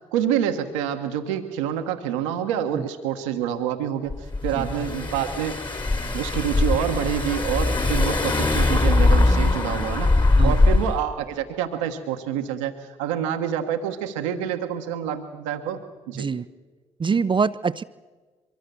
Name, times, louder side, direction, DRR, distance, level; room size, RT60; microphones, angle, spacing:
voice 1, 0.1-5.5 6.1-15.8 16.1-16.3, right 9 dB, 85° right, 5 dB, 1.3 m, -27 dB
Car / Engine, 4.1-11.0, left 2 dB, 30° left, 3.0 m, -21 dB
voice 2, 16.1-16.5 17.0-17.8, right 5 dB, 30° right, 13 dB, 0.6 m, -24 dB
23.5 x 23.0 x 6.9 m, 1.4 s
hypercardioid pair, 50°, 15 cm